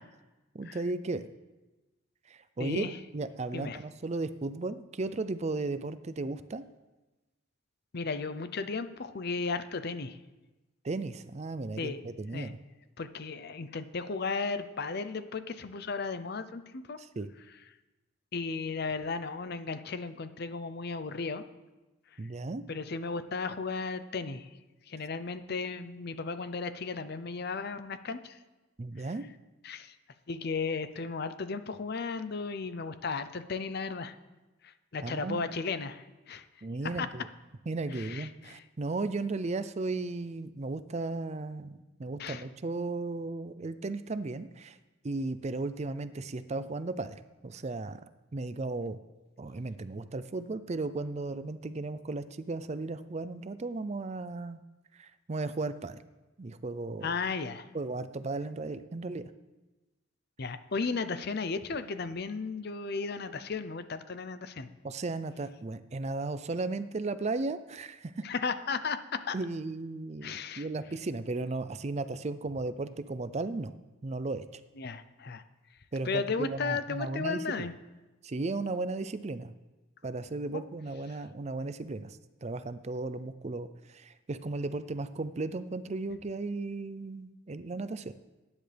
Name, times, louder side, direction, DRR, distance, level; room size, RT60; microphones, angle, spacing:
voice 1, 0.5-1.3 2.3-6.6 10.8-12.6 17.0-17.3 22.2-22.6 28.8-29.2 35.0-35.5 36.6-37.3 37.7-44.8 45.0-48.0 48.3-49.0 49.4-54.6 54.9-56.0 56.4-57.1 57.7-59.3 64.8-68.2 69.3-73.7 74.0-74.6 75.9-77.7 78.2-79.5 80.0-88.1, right 3 dB, 35° right, 12 dB, 0.5 m, -35 dB
voice 2, 2.6-3.0 3.5-3.8 7.9-10.2 11.8-12.0 12.3-12.5 13.0-17.0 18.3-21.4 22.7-24.5 24.9-28.4 29.0-29.1 29.6-29.9 30.3-34.2 34.6-36.4 37.0-37.1 37.9-38.6 42.2-42.4 57.0-57.7 60.4-64.7 68.2-69.4 70.2-70.7 74.8-75.4 76.0-77.7 80.5-80.7, left 4 dB, 55° left, 11 dB, 0.6 m, -35 dB
18.5 x 10.0 x 3.4 m, 1.1 s
head